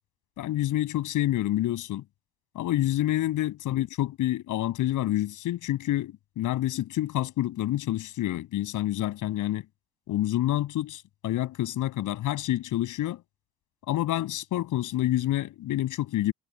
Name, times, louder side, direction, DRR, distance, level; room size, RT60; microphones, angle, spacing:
voice 1, 0.4-2.0 2.5-9.6 10.1-13.2 13.9-16.3, left 14 dB, 85° left, 7.9 m, -28 dB
cardioid pair, 90°, 30 cm